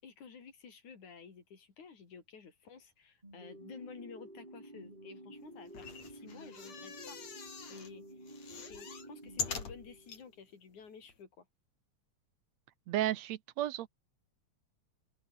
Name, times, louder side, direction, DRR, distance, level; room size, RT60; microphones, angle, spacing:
voice 1, 0.0-8.3 8.6-11.5, left 6 dB, 85° left, 5.2 m, -53 dB
sound 1, 3.2-10.4, right 1 dB, 15° right, 7.7 m, -51 dB
sound 2, 5.7-7.9 8.3-10.2 10.8-10.9 11.1-11.2, left 6 dB, 65° left, 4.8 m, -43 dB
voice 2, 12.9-13.9, right 13 dB, 75° right, 2.0 m, -33 dB
open air
omnidirectional pair, 3.3 m